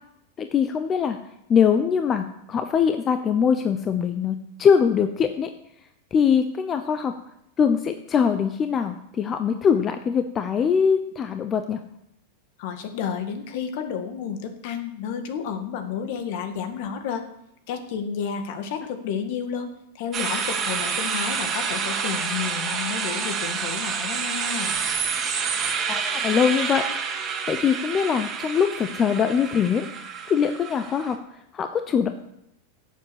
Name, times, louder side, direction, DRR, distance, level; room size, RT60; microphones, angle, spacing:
voice 1, 0.4-1.2 1.5-5.5 6.1-7.1 7.6-11.8 25.7-26.8 27.5-29.9 30.3-31.2 31.5-32.1, left 7 dB, 25° left, 8 dB, 0.8 m, -22 dB
voice 2, 12.6-17.2 17.7-24.8, left 7 dB, 60° left, 7 dB, 2.0 m, -31 dB
sound 1, 20.1-31.1, right 6 dB, 25° right, 1.9 m, -28 dB
11.0 x 7.5 x 8.1 m, 0.78 s
supercardioid pair, 135°, 0 cm